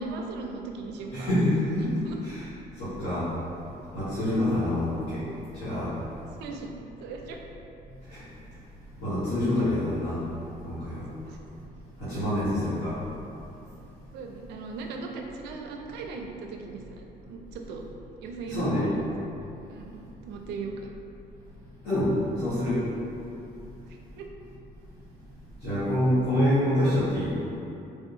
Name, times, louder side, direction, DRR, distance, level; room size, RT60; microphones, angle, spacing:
voice 1, 0.0-1.3 2.0-2.2 6.4-6.7 7.0-7.4 11.2-11.4 13.7-13.8 14.1-17.8 18.2-19.0 19.7-20.9 23.9-24.3, right 4 dB, 80° right, 2 dB, 0.4 m, -38 dB
voice 2, 1.1-1.9 2.2-2.4 2.8-3.3 3.9-5.2 5.6-5.9 8.1-8.2 9.0-10.2 10.6-11.0 12.0-13.0 18.5-18.9 21.8-22.9 25.6-27.3, left 1 dB, 70° left, -15 dB, 1.3 m, -26 dB
3.4 x 2.7 x 2.5 m, 2.8 s
cardioid pair, 110°, 17 cm